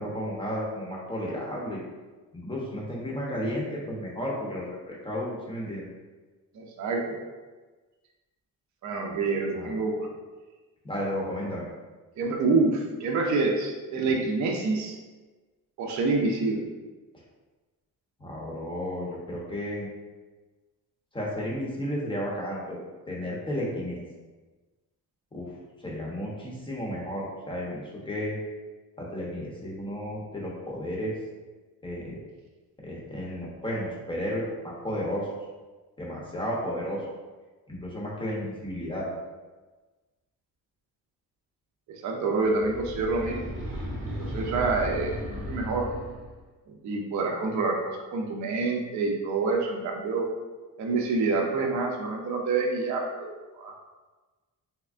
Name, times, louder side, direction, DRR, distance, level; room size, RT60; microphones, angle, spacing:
voice 1, 0.0-1.8 2.3-5.9 9.5-9.7 10.8-11.6 14.0-14.2 18.2-19.9 21.1-22.8 23.1-24.0 25.3-25.6 25.8-28.4 29.0-31.1 31.8-32.2 32.8-35.3 36.0-37.0 37.7-39.1, equal, 15° left, -4 dB, 0.7 m, -33 dB
voice 2, 6.5-7.2 8.8-10.1 12.2-15.0 15.8-16.7 41.9-43.5 44.1-45.9 46.7-50.3 50.8-53.3 53.6-53.7, right 3 dB, 50° right, 1 dB, 0.5 m, -27 dB
sound 1, 42.5-46.4, equal, 20° right, 0.7 m, -35 dB
3.5 x 3.3 x 2.4 m, 1.3 s
cardioid pair, 150°, 36 cm